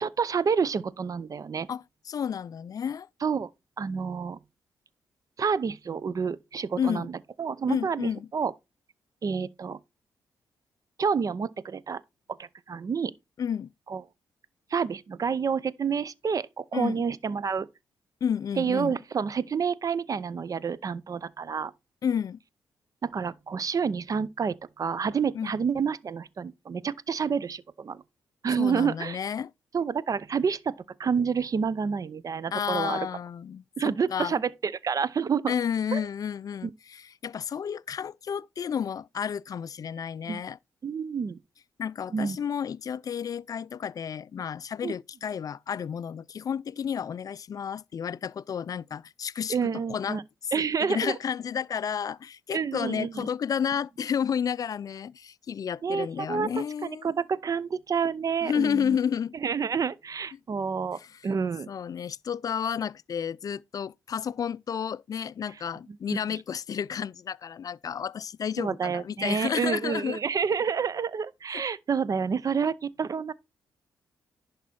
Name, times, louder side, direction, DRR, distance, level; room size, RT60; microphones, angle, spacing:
voice 1, 0.0-1.7 3.2-3.5 3.8-4.4 5.4-7.1 7.4-8.5 9.2-9.8 11.0-12.0 12.4-13.1 13.9-14.0 14.7-17.7 18.6-21.7 23.0-28.0 28.4-29.2 29.7-30.7 31.0-33.1 33.8-35.5 35.9-36.0 36.6-36.7 40.3-40.4 40.8-41.4 42.1-42.4 44.8-44.9 49.5-50.2 50.5-51.1 52.5-53.3 55.8-56.5 56.8-59.0 59.4-61.7 66.1-66.4 68.6-73.3, right 6 dB, 45° right, 0.6 m, -29 dB
voice 2, 1.7-3.1 6.8-7.1 7.7-8.3 13.4-13.7 16.7-17.0 18.2-19.0 22.0-22.4 25.3-25.5 28.6-29.5 32.5-34.4 35.5-40.6 41.8-50.2 50.6-57.1 58.4-59.3 61.0-61.1 61.7-70.2 71.5-71.6, left 8 dB, 50° left, 0.3 m, -31 dB
11.0 x 4.1 x 4.3 m
supercardioid pair, 60°, 8 cm